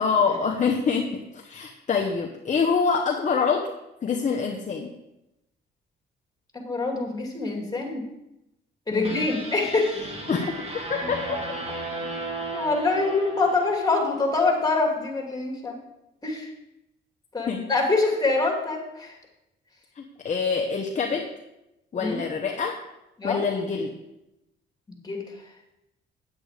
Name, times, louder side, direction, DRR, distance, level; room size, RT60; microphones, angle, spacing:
voice 1, 0.0-3.7 4.0-4.9 8.9-9.3 10.3-10.5 10.9-11.4 17.5-17.7 20.0-21.3 21.9-22.8 23.2-23.9, left 5 dB, 40° left, 2 dB, 1.0 m, -25 dB
voice 2, 6.5-8.0 8.9-10.1 12.5-15.8 16.2-16.5 17.3-19.1 22.0-22.2 23.2-23.4 24.9-25.2, left 3 dB, 20° left, 1 dB, 2.5 m, -25 dB
sound 1, 9.0-14.3, right 2 dB, 30° right, 2.2 m, -35 dB
8.7 x 7.7 x 4.9 m, 0.90 s
cardioid pair, 90°, 20 cm